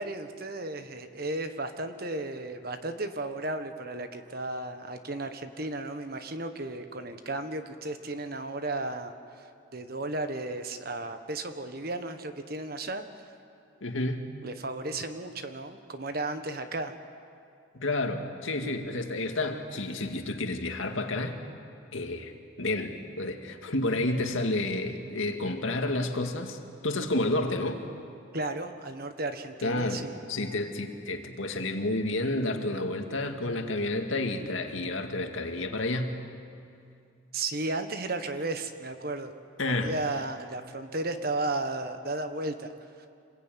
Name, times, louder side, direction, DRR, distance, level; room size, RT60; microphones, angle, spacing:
voice 1, 0.0-9.4 9.7-13.0 14.4-16.9 28.3-30.2 37.3-39.3 39.7-42.7, right 2 dB, 50° right, 8 dB, 1.4 m, -34 dB
voice 2, 13.8-14.3 17.8-21.4 21.9-22.3 22.6-27.8 29.6-36.2 39.6-39.9, left 2 dB, 75° left, 4 dB, 2.2 m, -30 dB
26.5 x 21.0 x 9.3 m, 2.5 s
head